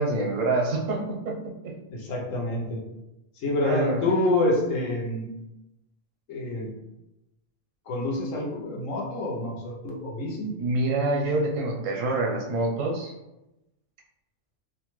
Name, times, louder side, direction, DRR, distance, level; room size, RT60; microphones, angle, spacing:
voice 1, 0.0-1.7 3.6-4.1 10.6-13.1, right 2 dB, 90° right, -1 dB, 1.1 m, -26 dB
voice 2, 1.9-2.8 3.4-5.3 6.3-6.7 7.9-10.5, left 2 dB, 90° left, -2 dB, 1.1 m, -27 dB
2.8 x 2.2 x 3.0 m, 0.94 s
omnidirectional pair, 1.3 m